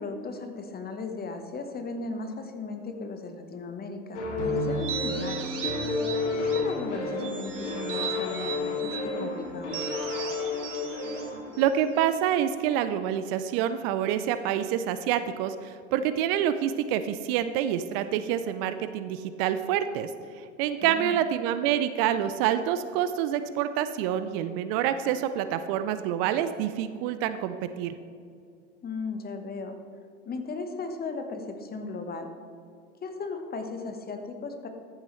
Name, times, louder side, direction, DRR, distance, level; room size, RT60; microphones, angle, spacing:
voice 1, 0.0-5.5 6.4-10.0 20.8-21.1 28.8-29.8 30.2-32.3 33.0-34.7, left 4 dB, 25° left, 6 dB, 1.1 m, -36 dB
sound 1, 4.1-11.6, left 3 dB, 70° left, 2.3 m, -31 dB
sound 2, 4.7-6.8 7.2-9.1 9.7-12.2, right 8 dB, 80° right, 1.3 m, -38 dB
voice 2, 11.6-20.1 20.4-27.9, right 10 dB, 50° right, 11 dB, 0.5 m, -27 dB
14.0 x 7.4 x 3.2 m, 2.4 s
hypercardioid pair, 80°, 36 cm